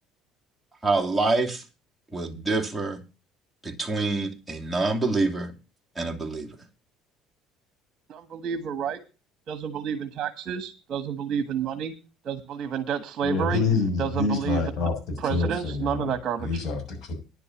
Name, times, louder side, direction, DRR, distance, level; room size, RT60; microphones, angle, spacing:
voice 1, 0.8-1.6 2.1-3.0 3.6-5.5 6.0-6.5, right 3 dB, ahead, 2.7 m, -26 dB
voice 2, 8.1-9.0 9.5-11.9 12.2-13.6 14.0-14.6 15.2-16.6, right 7 dB, 50° right, 1.5 m, -30 dB
voice 3, 13.2-14.9 15.3-16.1 16.4-17.1, left 4 dB, 50° left, 6.7 m, -26 dB
10.5 x 6.8 x 7.3 m
supercardioid pair, 100°, 0 cm